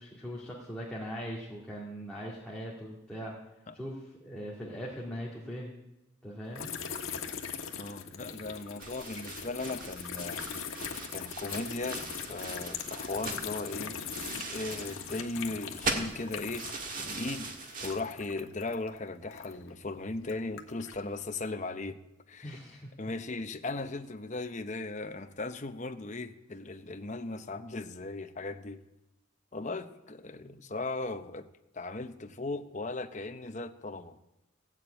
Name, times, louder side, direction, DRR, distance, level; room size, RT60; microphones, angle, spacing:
voice 1, 0.0-3.4 3.7-5.7 6.2-6.7 22.4-22.9 30.4-30.6, equal, 5° left, -6 dB, 2.0 m, -40 dB
sound 1, 6.5-16.9 17.2-19.7 20.2-21.0, left 7 dB, 80° left, 1.4 m, -41 dB
voice 2, 7.8-10.4 11.1-14.0 14.5-16.7 17.0-17.5 17.8-22.0 22.3-22.6 23.0-28.8 29.5-31.5 31.7-34.2, left 2 dB, 35° left, 8 dB, 0.8 m, -37 dB
sound 2, 8.8-18.0, right 3 dB, 40° right, 1.7 m, -40 dB
16.0 x 7.5 x 8.8 m, 0.97 s
head